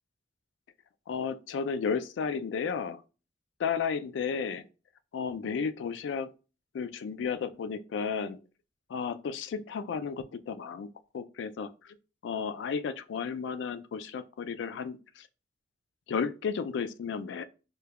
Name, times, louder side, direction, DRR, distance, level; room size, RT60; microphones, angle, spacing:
voice 1, 1.1-3.0 3.6-4.6 5.1-6.3 6.7-8.4 8.9-10.9 11.1-11.9 12.2-15.3 16.1-17.4, left 6 dB, 90° left, 0.3 m, -33 dB
5.0 x 2.2 x 2.2 m
head